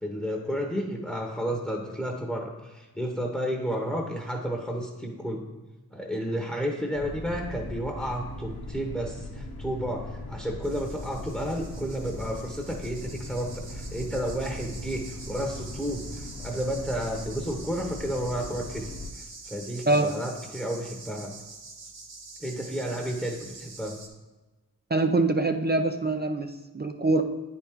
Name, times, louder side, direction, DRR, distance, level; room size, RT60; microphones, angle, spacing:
voice 1, 0.0-5.5 5.9-21.3 22.4-24.0, equal, 5° left, 1 dB, 1.0 m, -32 dB
sound 1, 6.9-19.1, left 1 dB, 80° left, 0.9 m, -39 dB
sound 2, 10.6-24.1, right 3 dB, 80° right, 1.1 m, -46 dB
voice 2, 24.9-27.2, right 2 dB, 25° right, 5 dB, 0.5 m, -24 dB
8.9 x 4.4 x 3.6 m, 1.2 s
cardioid pair, 45°, 37 cm